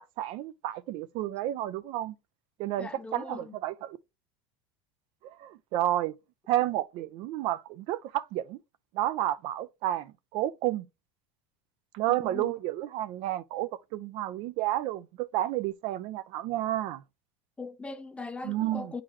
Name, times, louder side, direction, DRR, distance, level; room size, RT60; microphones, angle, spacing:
voice 1, 0.0-2.1 2.6-4.0 5.2-6.2 6.5-8.6 8.9-10.8 11.9-17.0 18.4-18.9, right 14 dB, 50° right, 0.5 m, -31 dB
voice 2, 2.8-3.5 12.1-12.5 17.6-19.0, left 3 dB, 10° left, 0.5 m, -40 dB
8.7 x 3.9 x 3.1 m
supercardioid pair, 150°, 12 cm